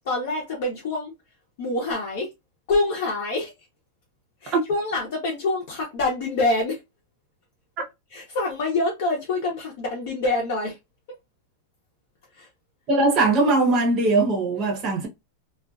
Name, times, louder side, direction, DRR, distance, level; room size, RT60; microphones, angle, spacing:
voice 1, 0.0-1.1 1.6-2.3 2.7-3.5 4.4-6.8 8.1-10.8 12.3-12.5, left 2 dB, 50° left, 0.7 m, -26 dB
voice 2, 12.9-15.1, right 3 dB, 25° right, 0.7 m, -20 dB
2.4 x 2.3 x 2.3 m
supercardioid pair, 180°, 0 cm